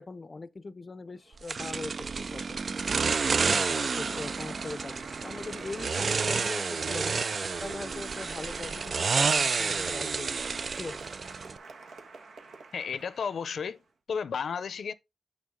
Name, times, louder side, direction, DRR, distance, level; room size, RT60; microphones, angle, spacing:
voice 1, 0.0-2.6 3.5-7.2 7.6-10.4 10.8-11.1, left 3 dB, 35° left, 0.5 m, -41 dB
Applause, 1.2-13.7, right 4 dB, 80° right, 1.3 m, -47 dB
sound 1, 1.5-11.6, right 5 dB, 55° right, 0.4 m, -30 dB
voice 2, 12.7-13.8 14.1-14.9, left 6 dB, 85° left, 0.6 m, -33 dB
6.8 x 6.5 x 3.6 m
wide cardioid pair, 130°, 0 cm